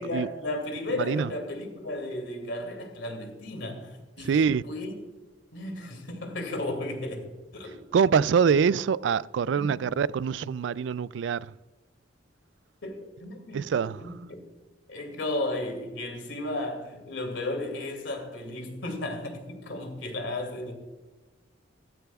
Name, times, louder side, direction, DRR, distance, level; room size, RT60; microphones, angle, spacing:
voice 1, 0.0-4.9 5.5-7.9 8.5-8.6 9.5-9.9 12.8-14.4 14.9-20.7, left 2 dB, 75° left, 2.6 m, -34 dB
voice 2, 1.0-1.3 4.2-4.6 7.9-11.5 13.5-14.0, right 6 dB, 70° right, 0.3 m, -24 dB
15.0 x 13.0 x 2.4 m
head